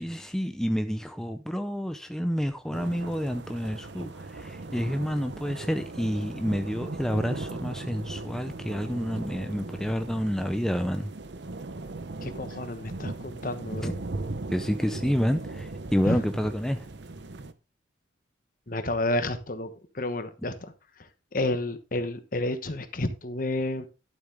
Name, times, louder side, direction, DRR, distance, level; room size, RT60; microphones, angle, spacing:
voice 1, 0.0-11.1 13.8-13.9 14.5-16.9, equal, 5° left, 0.5 m, -29 dB
sound 1, 2.7-17.5, right 2 dB, 70° right, 0.8 m, -38 dB
voice 2, 12.2-13.9 16.0-16.2 18.7-20.5 21.3-23.9, left 1 dB, 45° left, 1.2 m, -30 dB
12.0 x 7.6 x 3.5 m
head